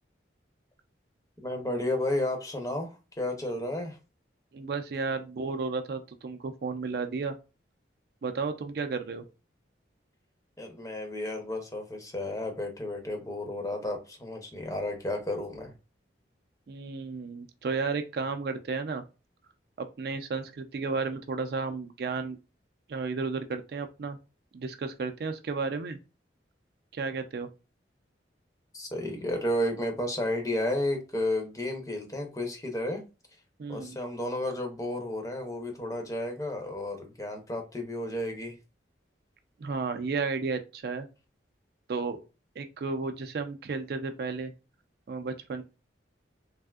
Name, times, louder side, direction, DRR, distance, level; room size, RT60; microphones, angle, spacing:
voice 1, 1.4-4.0 10.6-15.7 28.7-33.0 33.7-38.6, left 1 dB, 15° left, 0.6 m, -32 dB
voice 2, 4.5-7.4 8.2-9.2 16.7-19.0 19.8-22.4 22.9-24.2 24.5-26.0 26.9-27.5 33.6-34.0 39.6-41.1 41.9-42.2 42.6-44.5 45.1-45.6, right 4 dB, 55° right, 0.4 m, -33 dB
3.3 x 2.6 x 2.3 m
head